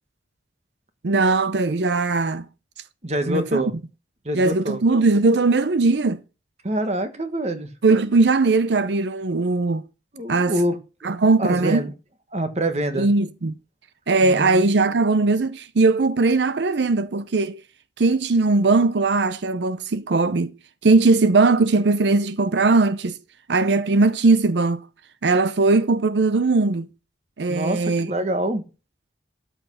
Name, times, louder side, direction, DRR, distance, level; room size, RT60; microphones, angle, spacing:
voice 1, 1.0-2.5 3.3-3.6 4.3-6.2 7.8-9.8 10.3-10.5 11.0-11.8 13.0-13.5 14.1-17.6 18.0-20.5 20.8-23.2 23.5-24.8 25.2-26.9 27.4-28.1, right 3 dB, 70° right, 0.6 m, -19 dB
voice 2, 3.0-3.7 4.2-4.8 6.6-7.7 10.1-11.1 11.4-11.9 12.3-13.1 14.2-14.7 27.5-28.6, right 1 dB, 35° right, 1.5 m, -26 dB
12.5 x 5.7 x 5.4 m
head